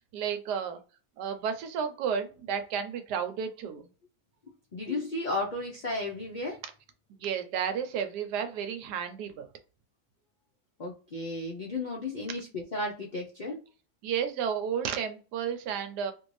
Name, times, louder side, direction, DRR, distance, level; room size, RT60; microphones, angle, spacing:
voice 1, 0.1-0.8 1.2-3.9 7.1-9.5 14.0-16.1, right 7 dB, 85° right, 7 dB, 1.2 m, -32 dB
voice 2, 4.7-6.6 10.8-13.6, left 2 dB, 80° left, -1 dB, 0.4 m, -34 dB
2.8 x 2.6 x 3.1 m, 0.35 s
omnidirectional pair, 1.7 m